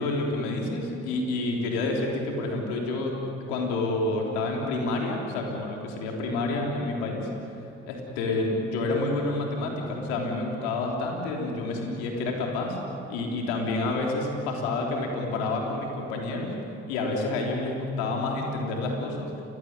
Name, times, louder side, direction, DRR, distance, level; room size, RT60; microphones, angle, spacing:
voice 1, 0.0-3.2 3.5-7.2 7.5-12.8 13.1-16.5 16.9-19.3, left 2 dB, 85° left, 0 dB, 3.6 m, -29 dB
29.5 x 16.5 x 9.6 m, 2.7 s
hypercardioid pair, 45°, 31 cm